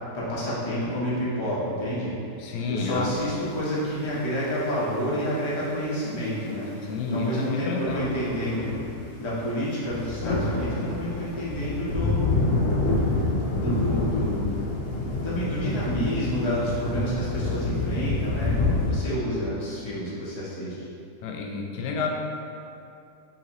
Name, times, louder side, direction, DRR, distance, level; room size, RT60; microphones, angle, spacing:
voice 1, 0.1-2.1 2.7-8.7 9.2-12.2 13.1-13.2 13.5-14.4 15.2-20.9, equal, 25° left, -8 dB, 0.7 m, -29 dB
voice 2, 2.4-3.1 6.8-8.1 21.2-22.1, left 4 dB, 90° left, 1 dB, 1.2 m, -29 dB
sound 1, 2.9-9.0 9.5-9.6 9.8-18.9, left 3 dB, 65° left, 1.0 m, -27 dB
5.7 x 2.8 x 3.0 m, 2.7 s
omnidirectional pair, 1.8 m